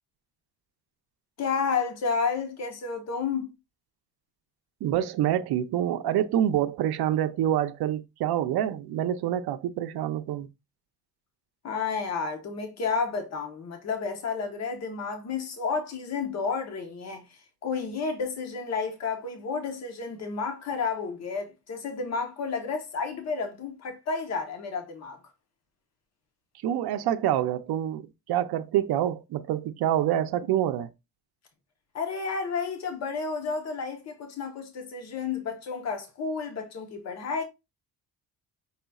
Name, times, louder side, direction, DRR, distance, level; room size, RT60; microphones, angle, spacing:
voice 1, 1.4-3.5 11.6-17.3 17.6-25.2 31.9-37.4, left 5 dB, 40° left, 0.9 m, -31 dB
voice 2, 4.8-10.5 26.6-30.9, right 11 dB, 70° right, 0.6 m, -26 dB
5.6 x 4.0 x 2.3 m
cardioid pair, 180°, 39 cm